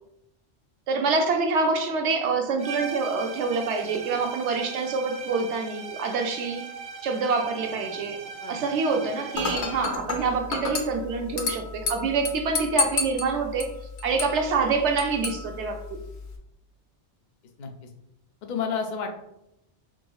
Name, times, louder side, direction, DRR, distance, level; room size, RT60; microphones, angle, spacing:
voice 1, 0.9-6.6 7.0-8.2 8.5-13.7 14.0-16.0, right 4 dB, 75° right, 5 dB, 0.9 m, -26 dB
sound 1, 2.6-10.0, right 5 dB, 40° right, 0.5 m, -39 dB
Dishes pots and pans / Glass, 9.4-16.4, left 4 dB, 70° left, 0.9 m, -32 dB
voice 2, 17.6-17.9 18.4-19.1, left 6 dB, 50° left, 3 dB, 0.6 m, -31 dB
3.8 x 3.8 x 2.3 m, 0.83 s
omnidirectional pair, 1.2 m